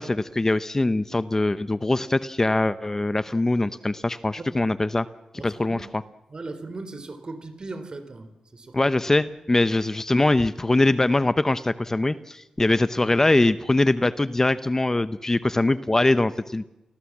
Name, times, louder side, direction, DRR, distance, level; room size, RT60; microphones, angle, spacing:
voice 1, 0.0-5.1 5.4-6.0 8.7-16.6, left 2 dB, 25° left, 14 dB, 0.8 m, -22 dB
voice 2, 5.3-5.9 6.3-8.9 9.2-9.3, right 3 dB, 45° right, 10 dB, 3.7 m, -38 dB
29.0 x 19.5 x 7.3 m, 0.94 s
cardioid pair, 75°, 2 cm